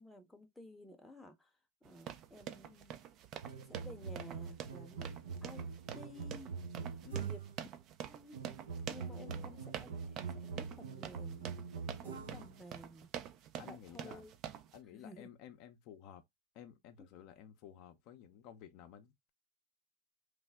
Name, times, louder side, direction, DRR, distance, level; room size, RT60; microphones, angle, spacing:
voice 1, 0.0-1.5 1.8-3.0 3.7-5.1 5.4-5.7 5.9-6.5 7.2-7.4 8.1-8.4 8.9-11.6 12.0-13.1 13.6-14.3 14.9-15.3 17.0-17.1, left 1 dB, 5° left, 0.7 m, -54 dB
sound 1, 1.8-14.8, right 10 dB, 45° right, 0.5 m, -47 dB
sound 2, 3.4-7.7 8.3-12.6, right 6 dB, 80° right, 0.7 m, -44 dB
voice 2, 9.1-9.7 12.2-12.5 13.6-14.3 14.7-16.2 16.5-19.3, left 10 dB, 55° left, 0.5 m, -54 dB
3.2 x 2.0 x 3.4 m
hypercardioid pair, 100°, 0 cm